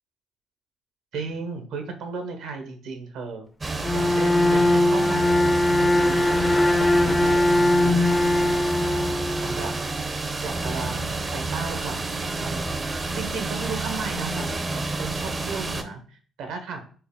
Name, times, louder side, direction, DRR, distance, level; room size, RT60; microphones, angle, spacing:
voice 1, 1.1-8.6 8.9-9.0 9.4-9.7 10.4-12.0 12.4-16.8, right 4 dB, 85° right, 5 dB, 0.8 m, -35 dB
sound 1, 3.6-15.8, right 3 dB, 30° right, 0.5 m, -29 dB
Bowed string instrument, 3.8-9.8, left 1 dB, 25° left, 0.5 m, -21 dB
4.4 x 2.1 x 3.5 m, 0.42 s
supercardioid pair, 70°, 0 cm